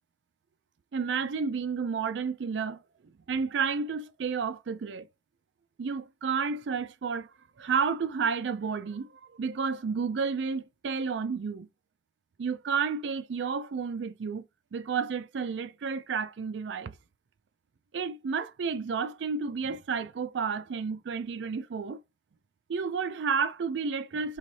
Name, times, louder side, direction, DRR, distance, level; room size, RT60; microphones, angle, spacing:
voice 1, 0.9-2.8 3.3-5.1 5.8-7.3 7.6-11.7 12.4-14.5 14.7-17.0 17.9-22.0 22.7-24.4, right 5 dB, 75° right, 0.4 m, -31 dB
3.2 x 3.1 x 3.9 m
head